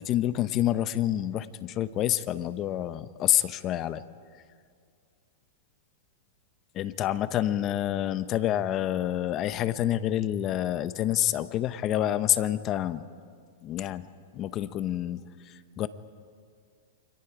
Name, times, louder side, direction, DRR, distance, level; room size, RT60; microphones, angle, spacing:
voice 1, 0.0-4.0 6.7-13.0 13.6-14.1 14.3-15.2 15.8-15.9, left 12 dB, 30° left, 13 dB, 0.8 m, -27 dB
29.0 x 26.0 x 4.9 m, 2.1 s
hypercardioid pair, 145°, 0 cm